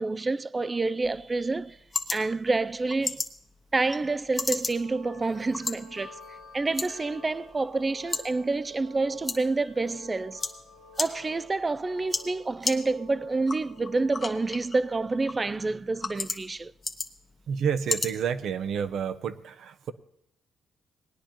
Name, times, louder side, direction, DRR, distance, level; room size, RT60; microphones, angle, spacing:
voice 1, 0.0-1.8 2.1-3.2 3.7-6.2 6.5-10.4 11.0-16.7, right 3 dB, 25° right, 0.3 m, -28 dB
sound 1, 1.0-19.0, left 3 dB, 30° left, 1.0 m, -37 dB
sound 2, 4.6-15.0, left 2 dB, 90° right, 4.4 m, -52 dB
Wind chime, 5.0-11.7, left 4 dB, 85° left, 1.6 m, -54 dB
voice 2, 17.5-19.9, right 7 dB, 70° right, 0.6 m, -29 dB
19.0 x 10.0 x 3.0 m
cardioid pair, 90°, 0 cm